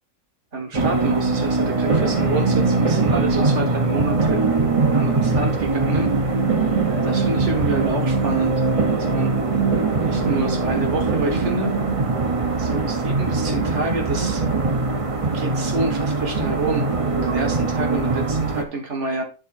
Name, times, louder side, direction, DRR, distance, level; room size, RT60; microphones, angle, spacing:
voice 1, 0.5-4.4 4.9-6.1 6.9-8.6 9.0-9.4 10.0-11.7 12.6-14.4 15.3-19.2, right 2 dB, 60° right, 4 dB, 2.0 m, -28 dB
sound 1, 0.7-18.6, right 3 dB, 30° right, 0.9 m, -21 dB
10.0 x 3.9 x 4.3 m, 0.33 s
omnidirectional pair, 1.3 m